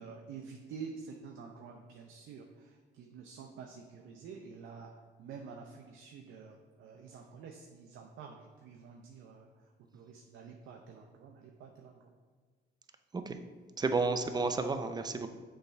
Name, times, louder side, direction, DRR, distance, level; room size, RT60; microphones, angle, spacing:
voice 1, 0.0-4.9 5.2-12.1, right 5 dB, 80° right, 2 dB, 0.6 m, -49 dB
voice 2, 13.8-15.3, right 3 dB, 20° right, 8 dB, 0.5 m, -31 dB
6.8 x 3.3 x 4.5 m, 1.5 s
cardioid pair, 90°, 20 cm